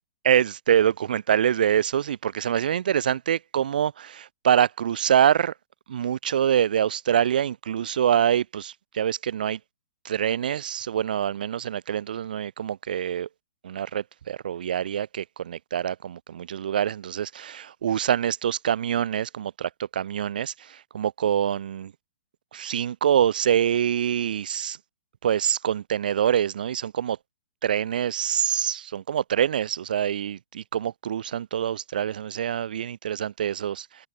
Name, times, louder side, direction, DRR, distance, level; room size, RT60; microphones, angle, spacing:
voice 1, 0.3-5.5 5.9-9.6 10.0-13.3 13.6-20.5 20.9-21.9 22.5-24.8 25.2-27.2 27.6-33.8, right 9 dB, 65° right, 6.2 m, -25 dB
open air
hypercardioid pair, 160°, 5 cm